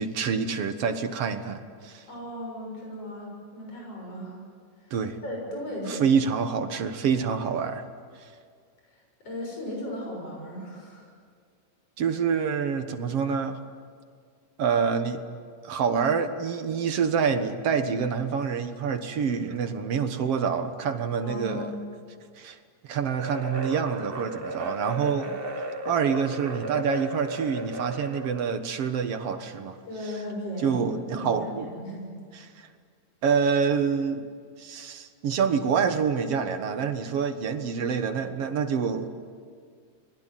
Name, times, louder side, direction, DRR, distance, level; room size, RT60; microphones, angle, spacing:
voice 1, 0.0-2.1 4.9-5.2 5.9-7.9 8.2-8.3 12.0-13.6 14.6-15.2 15.6-21.7 22.4-22.6 22.8-25.4 25.9-29.8 30.6-31.7 32.3-32.7 33.2-34.3 34.6-39.1, right 6 dB, 60° right, 8 dB, 2.2 m, -27 dB
voice 2, 2.1-4.4 5.2-6.2 9.2-11.1 21.2-21.8 29.9-32.1, left 1 dB, 50° left, -1 dB, 8.1 m, -36 dB
sound 1, 23.2-28.6, right 2 dB, 75° right, 0.5 m, -35 dB
29.0 x 21.0 x 9.1 m, 2.1 s
omnidirectional pair, 3.4 m